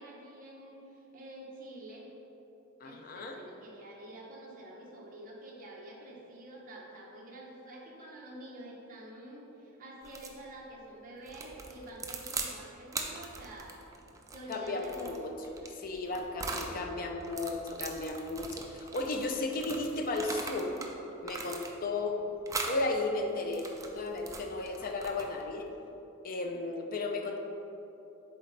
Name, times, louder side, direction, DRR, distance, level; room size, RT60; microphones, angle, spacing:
voice 1, 0.0-2.1 2.8-13.8 14.2-15.1 15.4-15.5 16.4-17.0, right 1 dB, 40° right, -4 dB, 1.0 m, -48 dB
voice 2, 2.8-3.4 14.5-15.3 15.8-20.8 21.2-22.2 22.7-25.7 26.2-27.4, left 2 dB, 40° left, 4 dB, 0.5 m, -34 dB
sound 1, 10.0-10.4 11.3-12.5 12.9-16.7 17.2-20.9 21.2-22.0 22.5-22.8 23.3-25.5, right 3 dB, 15° right, 0.4 m, -40 dB
7.8 x 3.8 x 3.2 m, 3.0 s
head